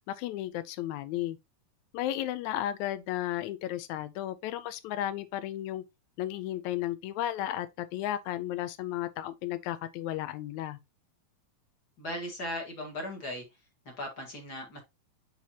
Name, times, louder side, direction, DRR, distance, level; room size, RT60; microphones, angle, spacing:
voice 1, 0.1-1.4 1.9-5.8 6.2-10.8, left 13 dB, 90° left, 1.7 m, -34 dB
voice 2, 12.0-13.4 13.8-14.8, left 1 dB, 35° left, 1.8 m, -37 dB
5.9 x 5.6 x 2.8 m
omnidirectional pair, 3.9 m